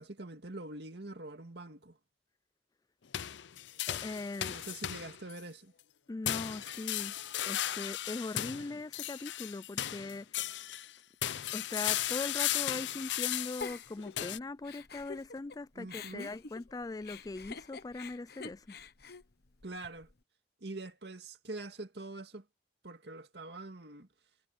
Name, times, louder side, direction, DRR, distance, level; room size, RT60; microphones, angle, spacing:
voice 1, 0.0-2.0 4.4-5.7 8.5-8.6 15.8-16.3 19.6-20.1 20.6-22.5 22.8-24.1, right 2 dB, 65° right, 2.2 m, -44 dB
sound 1, 3.1-5.4 6.3-10.9 11.2-14.4, left 12 dB, 85° left, 0.6 m, -36 dB
voice 2, 3.9-4.6 6.1-7.1 7.5-10.3 11.5-18.7, left 3 dB, 20° left, 0.3 m, -40 dB
Giggle, 13.6-15.6 15.9-20.1, left 5 dB, 60° left, 1.1 m, -47 dB
head